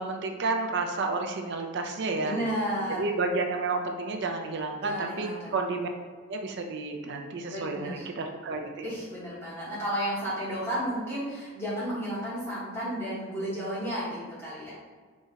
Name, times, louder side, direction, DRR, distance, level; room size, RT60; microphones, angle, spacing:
voice 1, 0.0-2.4 3.0-5.9 6.3-8.9, right 3 dB, 50° right, 4 dB, 0.4 m, -31 dB
voice 2, 2.2-3.1 4.8-5.5 7.5-8.1 8.8-14.7, equal, 10° left, -9 dB, 1.3 m, -32 dB
4.0 x 2.4 x 3.9 m, 1.5 s
head